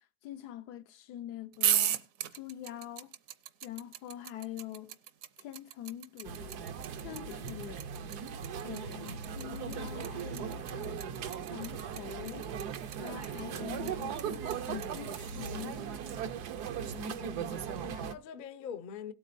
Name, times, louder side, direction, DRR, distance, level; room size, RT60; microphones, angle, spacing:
voice 1, 0.2-2.0 2.3-3.1 3.6-5.0 5.4-6.6 7.0-7.9 8.6-11.1 11.5-12.5 13.0-15.8, left 12 dB, 85° left, 1.3 m, -44 dB
sound 1, 1.5-15.6, right 10 dB, 65° right, 1.0 m, -35 dB
sound 2, 6.2-18.1, right 7 dB, 85° right, 1.4 m, -38 dB
voice 2, 16.9-19.1, left 7 dB, 70° left, 0.4 m, -44 dB
17.5 x 8.3 x 2.6 m
omnidirectional pair, 1.7 m